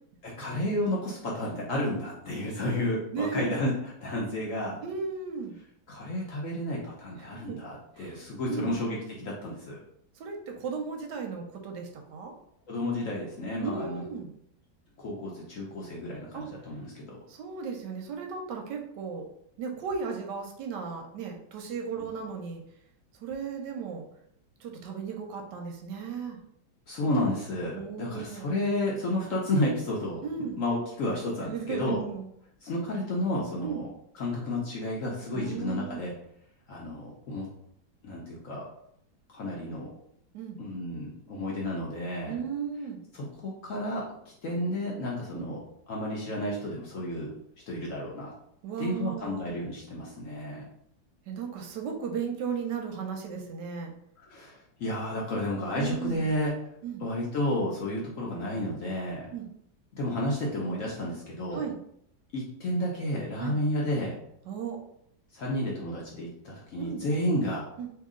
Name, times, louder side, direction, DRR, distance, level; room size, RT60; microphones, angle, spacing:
voice 1, 0.2-4.8 5.9-9.8 12.7-14.0 15.0-17.2 26.9-30.2 30.6-32.0 32.6-33.9 34.1-36.1 36.7-37.5 38.0-38.6 39.3-39.9 40.6-42.4 43.1-44.0 44.4-45.6 45.9-47.3 47.7-48.3 48.8-50.6 54.2-56.5 57.0-59.2 59.9-61.6 62.3-64.2 65.3-67.7, left 1 dB, 70° left, -3 dB, 0.8 m, -31 dB
voice 2, 3.1-3.6 4.8-5.5 7.2-7.6 8.0-8.2 8.5-8.8 10.2-12.3 13.6-14.3 16.3-16.5 17.3-19.3 19.6-22.6 23.2-24.1 24.6-26.4 27.7-28.5 30.2-30.6 31.5-32.3 33.6-33.8 35.3-36.1 40.3-40.6 42.2-43.0 45.3-45.5 48.6-49.5 51.3-53.9 55.8-56.3 56.8-57.1 59.3-59.5 61.5-61.8 63.4-63.6 64.5-64.8 66.8-67.0 67.8-67.9, right 6 dB, 75° right, 3 dB, 1.1 m, -35 dB
2.9 x 2.8 x 3.6 m, 0.71 s
omnidirectional pair, 2.1 m